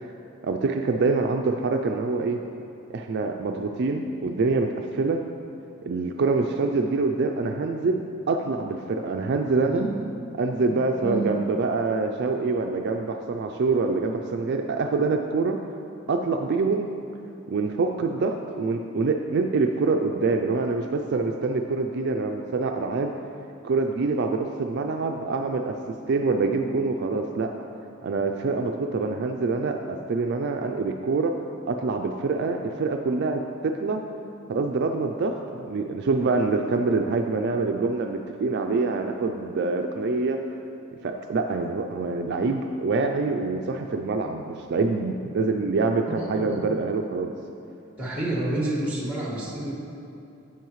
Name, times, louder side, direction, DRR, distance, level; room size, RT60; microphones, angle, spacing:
voice 1, 0.4-2.4 2.9-5.2 5.9-9.8 10.4-15.6 16.1-16.9 17.5-23.1 23.6-25.8 26.1-27.5 28.0-31.4 31.7-34.1 34.5-40.4 41.0-47.3, right 3 dB, 55° right, 3 dB, 0.3 m, -25 dB
voice 2, 9.6-9.9 10.7-11.4 46.1-46.7 48.0-49.7, right 2 dB, 5° right, -4 dB, 1.6 m, -29 dB
10.5 x 7.8 x 3.1 m, 2.8 s
head